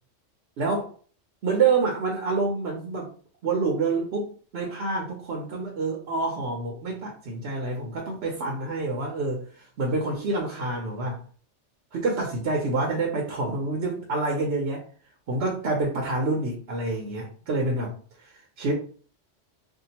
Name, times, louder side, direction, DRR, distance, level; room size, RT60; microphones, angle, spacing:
voice 1, 0.6-0.9 1.4-3.1 3.4-11.2 11.9-14.8 15.3-18.7, right 3 dB, 60° right, 0 dB, 0.8 m, -27 dB
2.7 x 2.4 x 2.8 m, 0.42 s
omnidirectional pair, 1.3 m